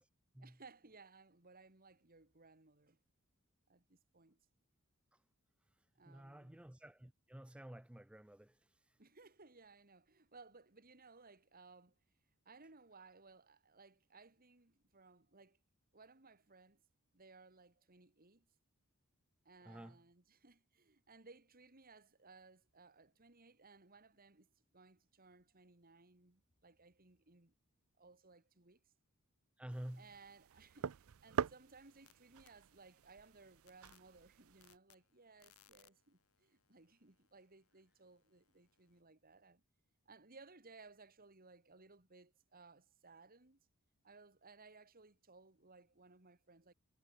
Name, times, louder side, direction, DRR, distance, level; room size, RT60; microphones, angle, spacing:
voice 1, 0.4-3.0 3.7-4.4 5.9-6.6 9.0-12.0 12.4-15.6 15.9-16.8 17.1-18.5 19.4-27.5 28.0-28.8 30.0-39.6 40.1-43.6 44.0-46.7, right 4 dB, 45° right, 2.6 m, -62 dB
voice 2, 6.1-8.6 19.6-20.0 29.6-30.1, right 1 dB, 5° right, 0.4 m, -51 dB
sound 1, 29.7-34.8, right 7 dB, 70° right, 0.5 m, -45 dB
sound 2, 31.7-32.1 32.5-39.0, left 10 dB, 85° left, 2.2 m, -72 dB
head